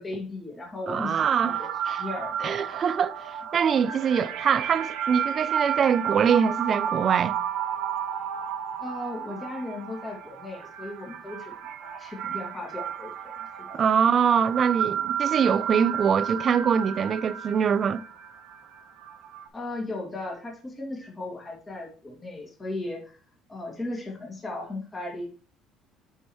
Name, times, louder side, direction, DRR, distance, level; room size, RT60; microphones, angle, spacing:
voice 1, 0.0-1.7 2.0-2.6 8.8-13.4 13.7-13.8 19.5-23.2 23.5-25.3, left 2 dB, 20° left, 2.1 m, -36 dB
voice 2, 0.9-1.5 1.9-2.0 2.4-7.3 13.7-18.0, right 7 dB, 40° right, 0.3 m, -23 dB
sound 1, 1.2-19.5, right 9 dB, 75° right, 1.0 m, -32 dB
9.7 x 4.7 x 3.0 m
cardioid pair, 130°, 0 cm